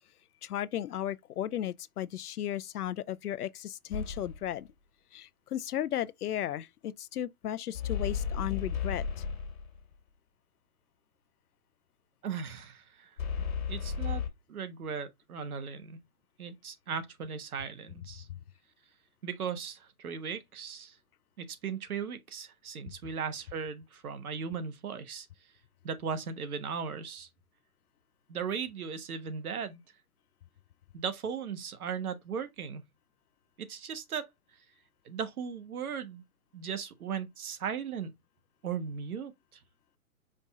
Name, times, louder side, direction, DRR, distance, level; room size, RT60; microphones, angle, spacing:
voice 1, 0.4-4.7 5.1-9.1, left 11 dB, 85° left, 0.6 m, -35 dB
sound 1, 3.9-4.5 7.7-9.8 13.2-14.3, left 7 dB, 65° left, 1.5 m, -34 dB
voice 2, 12.2-13.1 13.7-14.2 14.5-16.0 16.4-18.3 19.2-20.9 21.4-25.3 25.8-27.3 28.3-29.8 30.9-32.8 33.6-34.3 35.0-36.2 36.5-38.1 38.6-39.3, right 6 dB, 75° right, 1.2 m, -37 dB
5.2 x 2.4 x 4.1 m
hypercardioid pair, 140°, 44 cm